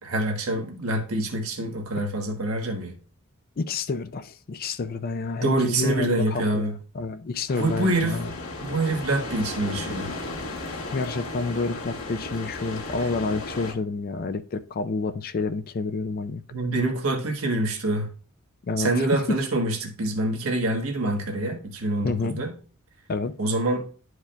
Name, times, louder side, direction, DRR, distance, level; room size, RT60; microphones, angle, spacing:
voice 1, 0.0-3.0 5.4-6.7 7.6-8.2 8.6-10.1 16.5-18.1 18.8-22.5 23.4-23.8, right 2 dB, 80° right, 1.3 m, -26 dB
voice 2, 3.6-8.3 10.7-16.4 18.6-19.4 22.0-22.4 23.1-23.3, left 3 dB, 45° left, 0.4 m, -29 dB
sound 1, 7.5-13.7, left 2 dB, 85° left, 1.7 m, -35 dB
11.5 x 4.7 x 2.2 m
head